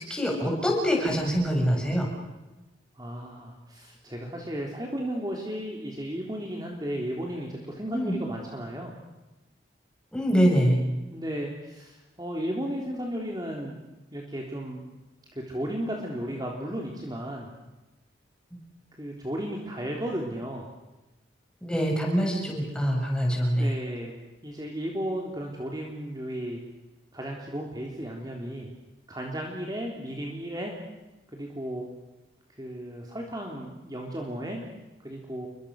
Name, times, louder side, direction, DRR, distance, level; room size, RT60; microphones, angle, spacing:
voice 1, 0.1-2.1 7.9-8.2 10.1-10.8 21.6-23.7, equal, 5° left, 0 dB, 7.0 m, -24 dB
voice 2, 3.0-8.9 11.1-13.8 14.1-14.8 15.3-17.5 19.0-20.6 23.5-24.1 24.4-26.6 27.1-28.7 29.1-30.8 31.3-31.9 32.6-34.6 35.0-35.5, equal, 20° right, 0 dB, 3.5 m, -34 dB
30.0 x 24.0 x 6.5 m, 1.1 s
head